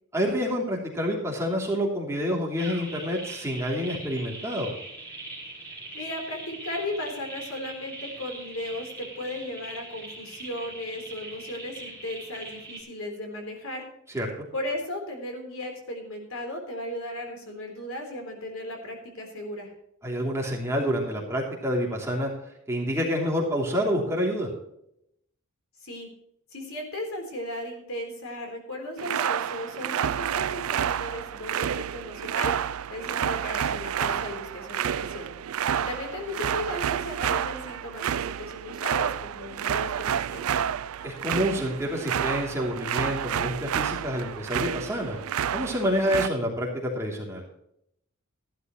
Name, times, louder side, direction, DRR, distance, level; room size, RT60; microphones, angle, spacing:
voice 1, 0.1-4.7 14.1-14.4 20.0-22.3 22.7-24.5 41.0-45.2 45.5-47.4, equal, 15° right, -2 dB, 3.0 m, -28 dB
sound 1, 2.6-12.8, right 2 dB, 10° left, 4.7 m, -41 dB
voice 2, 5.9-14.2 14.5-19.7 25.8-26.1 26.5-35.3 35.7-40.6, left 1 dB, 65° left, 3 dB, 3.9 m, -36 dB
sound 2, 29.0-46.3, right 9 dB, 75° right, 0.4 m, -29 dB
15.0 x 12.0 x 3.1 m, 0.75 s
head